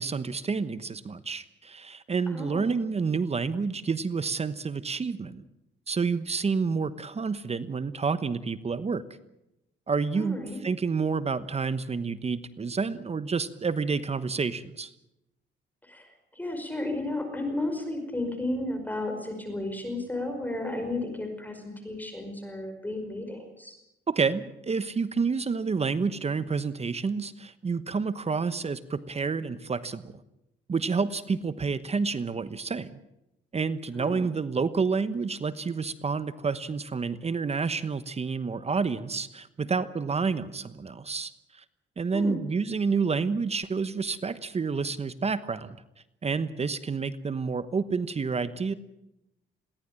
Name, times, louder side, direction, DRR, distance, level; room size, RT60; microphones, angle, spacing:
voice 1, 0.0-5.4 5.9-9.1 9.9-14.9 24.1-30.1 30.7-33.0 33.5-41.6 42.0-45.8 46.2-48.7, right 5 dB, 30° right, 14 dB, 1.1 m, -29 dB
voice 2, 2.3-2.7 10.1-10.6 15.8-23.8 34.0-34.3 42.1-42.4, left 2 dB, 10° left, 5 dB, 5.2 m, -33 dB
22.0 x 17.0 x 8.9 m, 0.88 s
cardioid pair, 90°, 20 cm